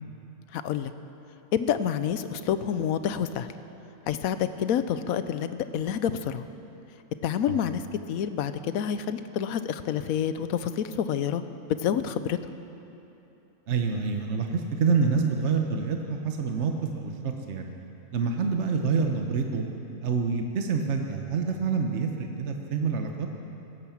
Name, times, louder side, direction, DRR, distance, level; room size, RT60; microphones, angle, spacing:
voice 1, 0.5-0.9 1.5-3.5 4.1-6.4 7.2-7.8 8.1-11.4 11.8-12.4, left 9 dB, 75° left, 12 dB, 1.1 m, -28 dB
voice 2, 13.7-17.7 18.1-19.7 20.0-23.3, right 5 dB, 55° right, 3 dB, 1.2 m, -27 dB
16.5 x 11.0 x 7.3 m, 2.9 s
omnidirectional pair, 1.5 m